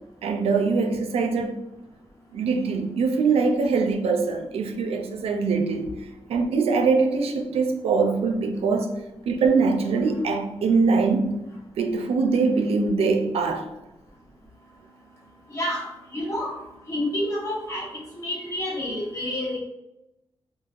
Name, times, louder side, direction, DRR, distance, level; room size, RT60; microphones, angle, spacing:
voice 1, 0.2-1.6 2.3-5.9 6.3-8.9 9.3-11.3 11.8-13.7, right 4 dB, 80° right, 0.4 m, -23 dB
voice 2, 15.5-15.9 16.1-16.6 16.9-17.9 18.2-19.6, left 1 dB, 30° left, 1.0 m, -28 dB
3.0 x 2.4 x 2.4 m
cardioid pair, 100°, 10 cm